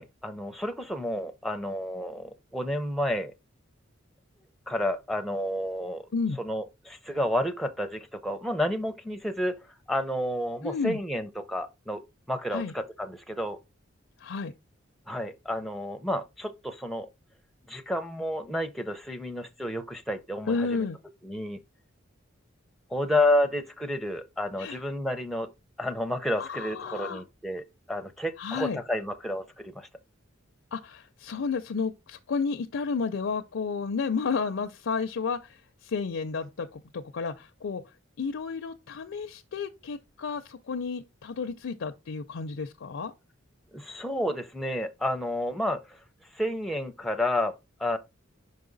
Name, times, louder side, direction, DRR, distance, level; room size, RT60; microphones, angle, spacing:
voice 1, 0.0-3.3 4.7-6.1 6.4-12.0 12.3-13.6 15.1-17.1 17.7-20.7 21.2-21.6 22.9-25.5 25.8-29.9 43.7-46.0 46.3-47.5 47.8-48.0, left 1 dB, ahead, 0.5 m, -30 dB
voice 2, 10.6-11.0 12.5-12.7 14.2-14.5 20.5-21.0 24.6-24.8 26.4-27.2 28.4-28.8 30.7-37.8 38.2-43.1, left 5 dB, 70° left, 0.5 m, -32 dB
5.4 x 4.7 x 3.9 m
head